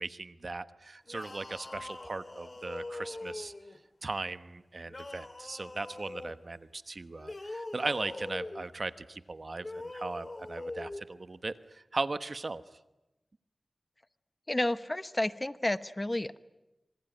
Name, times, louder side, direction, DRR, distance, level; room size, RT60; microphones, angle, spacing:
voice 1, 0.0-3.5 4.0-12.6, right 3 dB, 55° right, 12 dB, 1.1 m, -38 dB
sound 1, 1.1-3.8 4.9-6.4 7.2-8.7 9.6-11.0, left 2 dB, 45° left, 2.2 m, -42 dB
voice 2, 14.5-16.4, left 1 dB, 25° left, 13 dB, 1.0 m, -31 dB
26.5 x 23.5 x 9.2 m, 0.99 s
wide cardioid pair, 50°, 0 cm